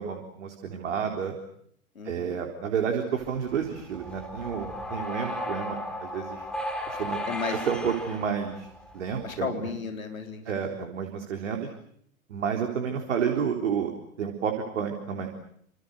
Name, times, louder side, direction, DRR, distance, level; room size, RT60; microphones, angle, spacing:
voice 1, 0.0-1.3 2.0-6.4 6.9-7.2 7.7-8.7 8.9-9.5 10.5-11.7 12.3-13.9 14.2-15.3, right 7 dB, 55° right, 3 dB, 4.1 m, -30 dB
voice 2, 1.9-2.4 7.3-7.6 9.2-10.8, left 5 dB, 75° left, 4 dB, 4.6 m, -34 dB
sound 1, 3.2-9.4, left 1 dB, ahead, 5.0 m, -36 dB
29.0 x 28.0 x 6.8 m, 0.67 s
figure-of-eight pair, 105°, 41 cm